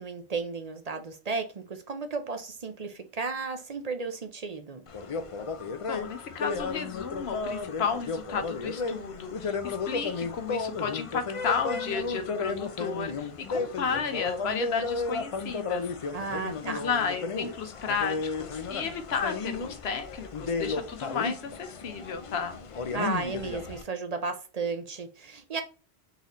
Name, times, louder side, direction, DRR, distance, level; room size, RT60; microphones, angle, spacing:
voice 1, 0.0-4.8 16.1-16.8 22.9-25.6, right 4 dB, 45° right, 0.6 m, -34 dB
sound 1, 4.9-23.8, left 4 dB, 45° left, 0.4 m, -33 dB
voice 2, 5.9-15.9 16.6-22.6, left 6 dB, 80° left, 1.1 m, -33 dB
4.0 x 4.0 x 3.0 m
omnidirectional pair, 1.1 m